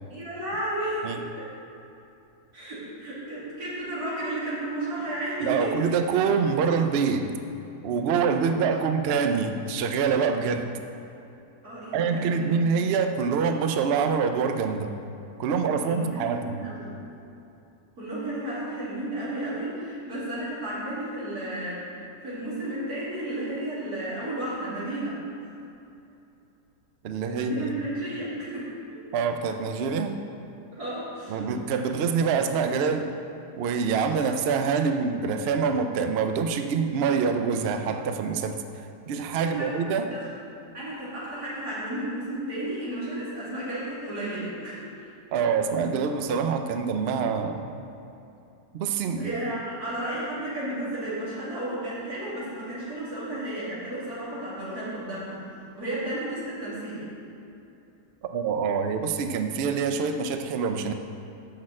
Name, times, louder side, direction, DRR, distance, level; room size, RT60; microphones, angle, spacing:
voice 1, 0.1-1.5 2.5-5.7 11.6-12.8 15.8-16.9 18.0-25.5 27.3-29.0 30.7-31.5 31.7-31.8 39.4-40.2 40.7-45.1 49.2-55.4 55.8-57.1, right 1 dB, 65° right, -9 dB, 3.2 m, -33 dB
voice 2, 5.4-7.3 7.8-10.7 11.9-14.9 15.4-16.6 27.0-27.7 29.1-30.2 31.3-33.1 33.6-38.6 39.1-40.1 45.3-47.7 48.7-49.3 58.3-60.9, right 5 dB, 85° right, 7 dB, 0.5 m, -25 dB
6.3 x 6.3 x 7.4 m, 2.8 s
omnidirectional pair, 1.8 m